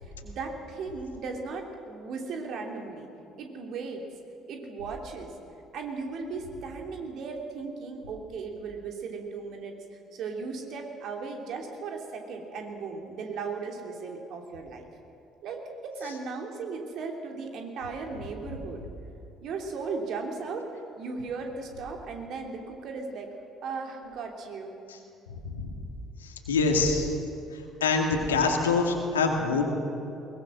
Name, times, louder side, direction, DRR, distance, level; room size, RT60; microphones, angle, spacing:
voice 1, 0.2-3.1 3.4-4.0 4.5-5.3 5.7-9.8 10.1-14.8 15.4-18.8 19.4-20.7 21.0-23.3 23.6-24.7, right 4 dB, 55° right, 2 dB, 3.1 m, -36 dB
voice 2, 26.5-27.1 27.8-29.6, left 4 dB, 85° left, 2 dB, 2.2 m, -24 dB
22.0 x 20.5 x 6.4 m, 2.7 s
figure-of-eight pair, 50°, 0 cm